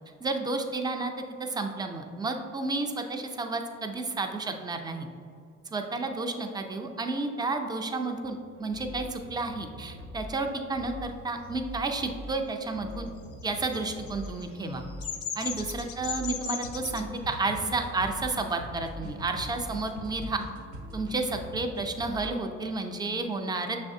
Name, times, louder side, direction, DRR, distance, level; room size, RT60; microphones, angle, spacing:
voice 1, 0.2-1.1 1.4-5.1 5.7-13.1 13.4-14.8 15.4-20.4 20.9-23.8, right 3 dB, 15° right, 5 dB, 0.4 m, -31 dB
sound 1, 8.5-22.3, left 1 dB, 45° right, 0.7 m, -44 dB
Bird vocalization bird call bird song, 13.3-17.0, left 8 dB, 50° left, 0.5 m, -36 dB
sound 2, 16.6-21.9, equal, 70° right, 1.0 m, -43 dB
6.1 x 3.2 x 2.7 m, 2.4 s
cardioid pair, 90°, 30 cm